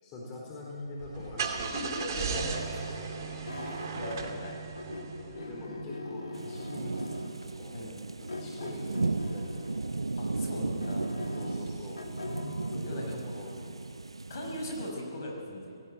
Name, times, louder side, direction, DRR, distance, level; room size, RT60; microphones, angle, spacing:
voice 1, 0.0-1.7 2.5-3.1 5.2-7.8 8.2-10.0 11.3-12.0 12.6-13.8, left 2 dB, 25° left, -4 dB, 4.4 m, -44 dB
Car / Engine starting, 1.0-5.7, right 5 dB, 45° right, 2.4 m, -36 dB
sound 1, 1.6-4.5 4.7-7.4 8.3-9.9 10.3-12.8, left 2 dB, 75° left, 2.6 m, -42 dB
voice 2, 1.7-2.6 3.0-3.4 3.7-4.5 5.3-5.5 7.7-8.0 10.2-11.1 12.9-13.1 14.3-15.7, left 1 dB, 45° left, 0 dB, 5.5 m, -39 dB
sound 2, 6.3-14.9, right 3 dB, 85° right, 0.5 m, -35 dB
18.0 x 16.5 x 9.0 m, 2.5 s
figure-of-eight pair, 140°, 3 cm